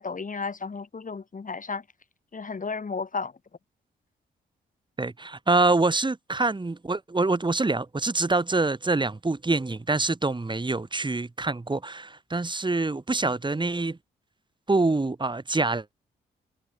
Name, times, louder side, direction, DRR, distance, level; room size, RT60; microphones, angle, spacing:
voice 1, 0.0-1.8 2.3-3.3, left 4 dB, 40° left, 3.0 m, -33 dB
voice 2, 5.0-14.0 14.7-15.9, right 3 dB, 25° right, 2.0 m, -25 dB
supercardioid pair, 50°, 20 cm